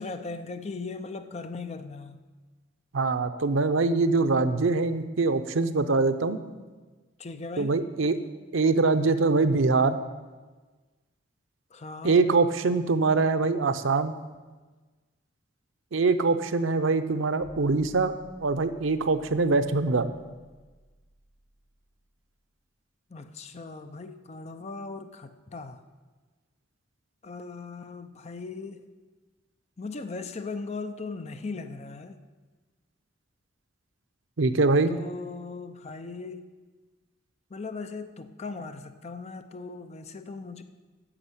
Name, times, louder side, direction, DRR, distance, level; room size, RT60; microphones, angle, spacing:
voice 1, 0.0-2.2 7.2-7.8 11.7-12.2 23.1-25.8 27.2-28.8 29.8-32.2 34.9-36.4 37.5-40.6, left 3 dB, 35° left, 8 dB, 0.6 m, -38 dB
voice 2, 2.9-6.4 7.6-8.2 8.5-10.0 12.0-14.2 15.9-18.1 18.4-20.1 34.4-34.9, right 3 dB, 90° right, 9 dB, 0.7 m, -23 dB
sound 1, 17.4-22.4, right 1 dB, 10° right, 3.3 m, -56 dB
9.9 x 6.2 x 8.0 m, 1.3 s
head